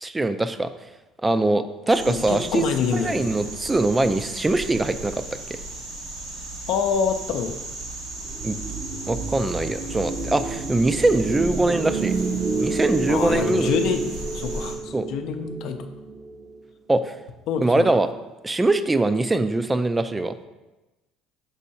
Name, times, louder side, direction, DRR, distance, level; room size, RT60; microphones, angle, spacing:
voice 1, 0.0-0.7 1.2-2.7 2.9-5.6 8.4-8.5 9.1-12.1 12.6-13.7 14.9-15.1 16.9-17.1 17.6-18.1 18.4-20.3, right 2 dB, 15° right, 11 dB, 0.4 m, -22 dB
sound 1, 1.9-14.8, right 2 dB, 85° right, 1.6 m, -36 dB
voice 2, 2.1-3.4 6.7-7.6 13.1-15.8 17.5-17.9, left 6 dB, 65° left, 7 dB, 0.5 m, -26 dB
sound 2, 8.2-16.6, right 3 dB, 45° right, 0.8 m, -29 dB
6.1 x 5.5 x 2.8 m, 1.1 s
hypercardioid pair, 70°, 0 cm